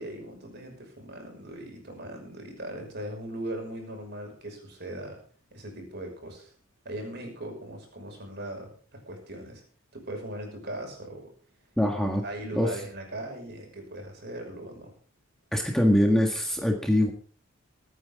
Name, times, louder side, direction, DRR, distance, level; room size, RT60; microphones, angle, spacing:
voice 1, 0.0-5.2 5.5-6.5 6.8-9.6 9.9-11.3 12.2-14.9, right 1 dB, 50° right, 2 dB, 5.9 m, -39 dB
voice 2, 11.8-12.2 12.5-12.7 15.5-17.1, left 1 dB, ahead, 1 dB, 1.6 m, -23 dB
23.5 x 9.4 x 3.7 m, 0.43 s
head